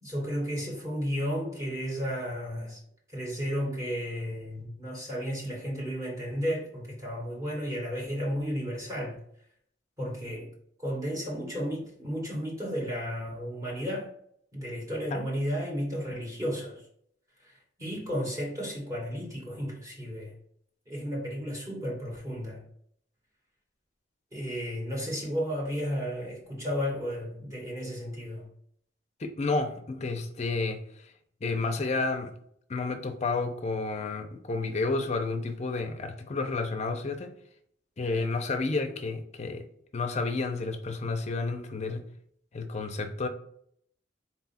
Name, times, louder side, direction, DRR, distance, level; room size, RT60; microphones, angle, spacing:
voice 1, 0.0-2.8 3.1-9.2 10.0-10.5 10.8-14.1 14.5-16.8 17.4-17.5 17.8-20.3 20.9-22.6 24.3-28.5, equal, 20° right, -3 dB, 1.2 m, -33 dB
voice 2, 29.2-30.8 31.4-32.3 32.7-37.3 38.0-39.7 39.9-42.0 42.5-43.3, left 3 dB, 40° left, 6 dB, 0.5 m, -31 dB
4.2 x 2.3 x 4.1 m, 0.67 s
head